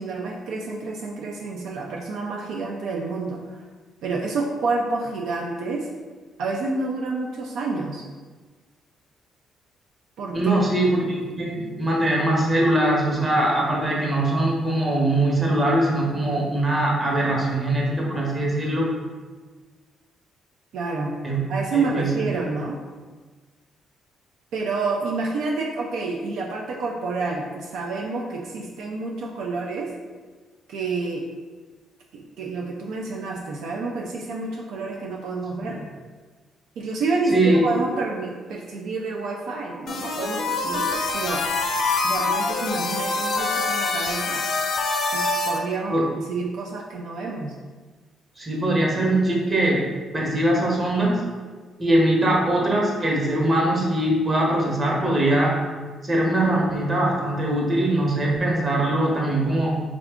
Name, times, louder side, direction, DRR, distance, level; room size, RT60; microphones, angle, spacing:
voice 1, 0.0-3.6 4.0-5.9 6.4-8.0 10.2-10.4 20.7-21.1 21.5-22.8 24.5-29.9 30.7-31.2 32.1-35.8 36.8-41.5 42.0-44.5 45.1-46.0 46.3-47.5, right 3 dB, 80° right, -1 dB, 0.4 m, -28 dB
voice 2, 10.3-18.9 21.2-21.4 21.7-22.1 35.6-35.7 37.3-37.6 45.9-46.0 48.4-49.8 50.1-51.2 51.8-55.6 56.0-59.8, right 1 dB, 30° right, -3 dB, 1.0 m, -22 dB
sound 1, 39.9-45.6, left 3 dB, 70° left, 0.4 m, -25 dB
3.5 x 2.4 x 3.5 m, 1.4 s
cardioid pair, 90°, 0 cm